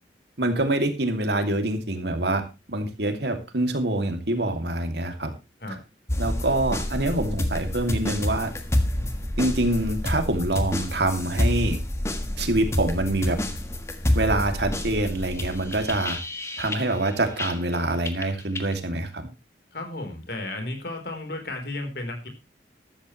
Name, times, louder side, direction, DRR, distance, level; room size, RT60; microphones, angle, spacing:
voice 1, 0.4-2.4 2.7-5.3 6.2-8.5 9.4-11.8 12.4-13.4 14.1-16.2 16.6-19.3, right 1 dB, 70° right, 5 dB, 2.7 m, -25 dB
sound 1, 6.1-17.8 18.1-18.7, left 1 dB, 15° left, 1.5 m, -28 dB
voice 2, 19.7-22.3, left 2 dB, 60° left, 4 dB, 4.0 m, -33 dB
14.0 x 13.0 x 3.2 m, 0.27 s
head